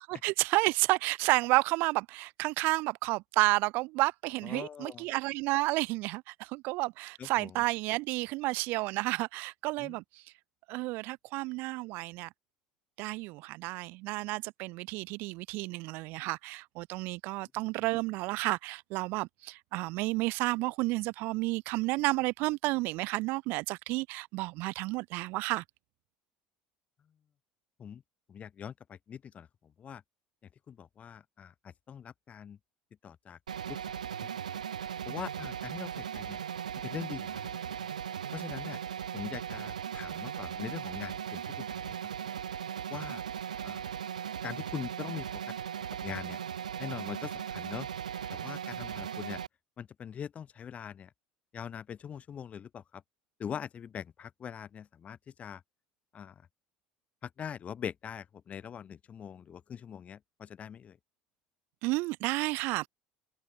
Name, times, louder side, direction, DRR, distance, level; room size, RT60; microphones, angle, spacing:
voice 1, 0.1-10.0 10.7-12.3 13.0-25.6 61.8-62.9, right 23 dB, 60° right, 1.2 m, -31 dB
voice 2, 4.4-5.0 7.2-7.6 9.8-10.0 27.8-28.0 28.3-30.0 30.7-32.6 33.0-33.4 33.7-34.6 35.0-36.4 36.8-37.9 38.3-38.8 39.1-42.0 42.9-43.2 43.6-43.8 44.4-45.4 46.0-46.4 46.8-47.9 48.3-49.4 49.8-51.1 51.5-53.0 53.4-55.6 56.1-56.4 57.2-61.0, left 8 dB, 35° left, 1.2 m, -42 dB
sound 1, 33.5-49.5, right 8 dB, 85° right, 0.5 m, -38 dB
figure-of-eight pair, 65°, 4 cm